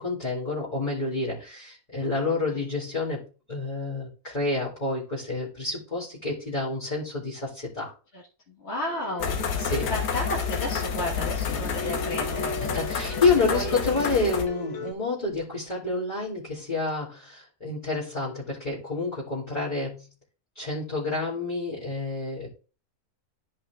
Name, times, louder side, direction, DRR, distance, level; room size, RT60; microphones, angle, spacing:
voice 1, 0.0-3.2 3.5-7.9 9.6-9.9 12.6-20.1 20.5-22.6, left 3 dB, 25° left, -7 dB, 2.7 m, -28 dB
voice 2, 8.1-9.5 9.9-12.8 13.1-13.2 13.5-13.8, left 1 dB, 45° left, -4 dB, 1.7 m, -33 dB
sound 1, 8.9-14.9, left 3 dB, 60° left, 1.6 m, -37 dB
sound 2, 9.2-14.5, left 6 dB, 90° left, 1.7 m, -30 dB
13.0 x 5.6 x 2.4 m, 0.35 s
omnidirectional pair, 1.7 m